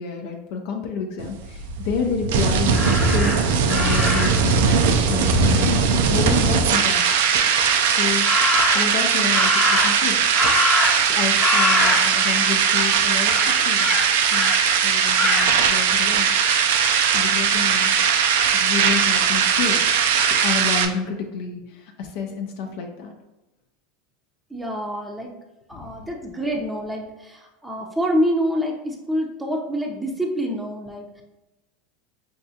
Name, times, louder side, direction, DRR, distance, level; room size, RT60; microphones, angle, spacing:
voice 1, 0.0-7.1 7.8-8.2 8.7-10.2 11.0-13.9 14.3-14.5 14.8-16.3 17.1-18.0 18.5-19.9 20.4-23.1 25.7-25.9, left 5 dB, 65° left, 2 dB, 0.5 m, -29 dB
sound 1, 1.2-20.9, right 6 dB, 75° right, 0.4 m, -19 dB
Crow, 2.7-4.5 8.2-9.0 9.3-11.1 11.4-12.4 12.7-13.0 13.3-14.6 15.2-15.5, left 2 dB, 25° left, 1.1 m, -23 dB
voice 2, 24.5-25.3 25.7-31.2, equal, 5° right, -1 dB, 0.6 m, -26 dB
5.5 x 2.3 x 2.7 m, 1.0 s
hypercardioid pair, 105°, 0 cm